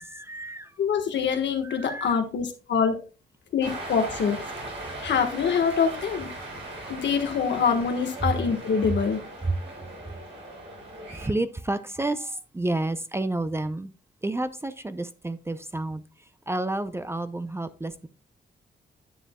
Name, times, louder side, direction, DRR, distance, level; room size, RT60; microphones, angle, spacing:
voice 1, 0.0-0.8 1.6-2.2 6.6-6.8 8.2-8.3 9.4-9.6 11.1-13.9 14.2-18.1, right 2 dB, 15° right, 0.5 m, -30 dB
voice 2, 0.8-3.0 3.5-4.4 5.0-6.3 6.9-9.2, left 6 dB, 80° left, 1.4 m, -25 dB
Cheering, 3.6-11.3, right 1 dB, 80° right, 4.1 m, -39 dB
10.0 x 6.7 x 2.3 m
cardioid pair, 105°, 19 cm